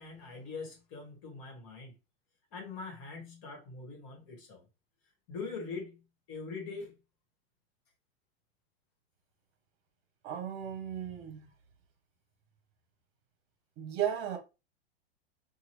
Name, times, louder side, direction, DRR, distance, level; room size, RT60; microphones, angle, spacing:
voice 1, 0.0-1.9 2.5-4.7 5.3-7.0, left 4 dB, 45° left, 1.3 m, -43 dB
voice 2, 10.2-11.5 13.8-14.4, right 9 dB, 50° right, 0.9 m, -35 dB
2.8 x 2.3 x 3.0 m
hypercardioid pair, 115°, 31 cm